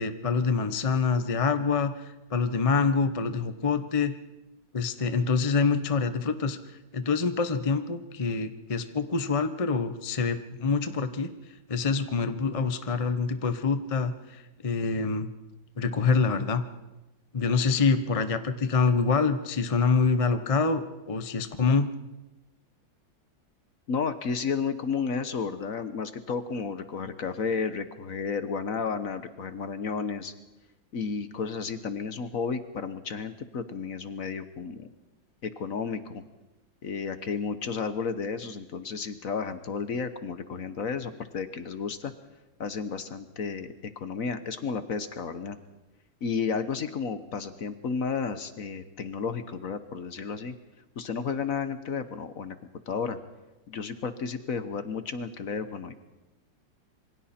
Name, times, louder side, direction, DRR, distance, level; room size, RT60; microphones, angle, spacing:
voice 1, 0.0-4.1 4.7-6.6 6.9-11.3 11.7-15.3 15.8-16.6 17.3-21.9, left 4 dB, 35° left, 9 dB, 0.5 m, -26 dB
voice 2, 23.9-30.3 30.9-34.9 35.4-36.2 36.8-42.1 42.6-45.6 46.2-50.5 51.0-52.6 52.9-53.2 53.7-55.9, left 5 dB, 50° left, 11 dB, 1.2 m, -32 dB
27.0 x 23.5 x 4.4 m, 1.0 s
omnidirectional pair, 2.2 m